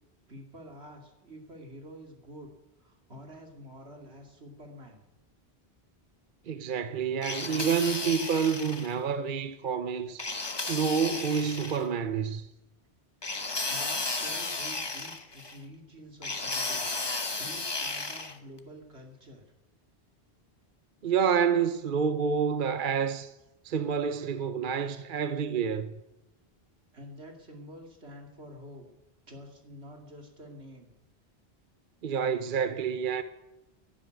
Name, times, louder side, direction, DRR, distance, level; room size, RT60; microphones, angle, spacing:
voice 1, 0.3-2.5 2.8-5.0 13.7-19.4 26.9-28.9 29.3-30.9, equal, 80° right, 2.9 m, -48 dB
voice 2, 6.5-10.3 10.7-12.5 21.0-23.3 23.6-25.9 32.0-33.2, right 7 dB, 55° right, 0.9 m, -28 dB
sound 1, 7.2-8.9 10.2-11.8 13.2-15.6 16.2-18.4, left 3 dB, 25° left, 1.0 m, -34 dB
12.0 x 11.0 x 9.4 m
omnidirectional pair, 1.1 m